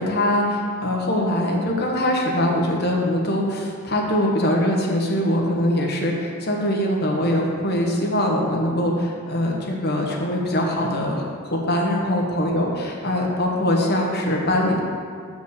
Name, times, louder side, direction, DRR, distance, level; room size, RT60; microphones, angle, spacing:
voice 1, 0.0-14.8, left 1 dB, 45° left, -1 dB, 1.1 m, -22 dB
6.9 x 5.1 x 6.5 m, 2.1 s
head